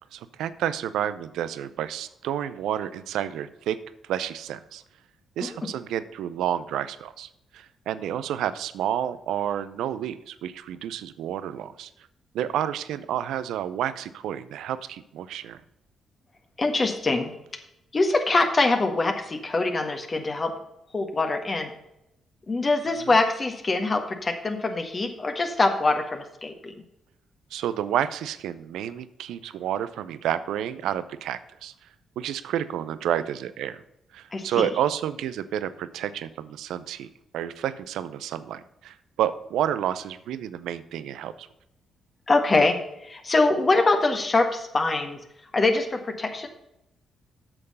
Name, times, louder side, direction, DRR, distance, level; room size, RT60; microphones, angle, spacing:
voice 1, 0.1-3.8 4.0-4.8 5.4-11.9 12.3-15.6 22.9-23.2 27.5-31.7 32.2-33.8 34.1-37.1 37.3-41.5, right 10 dB, 75° right, 14 dB, 0.5 m, -30 dB
voice 2, 16.6-17.3 17.9-20.5 20.9-21.7 22.5-26.7 34.3-34.7 42.3-42.8 43.1-45.2 45.5-46.5, left 3 dB, 40° left, 4 dB, 1.6 m, -23 dB
8.8 x 6.5 x 5.5 m, 0.84 s
hypercardioid pair, 45°, 0 cm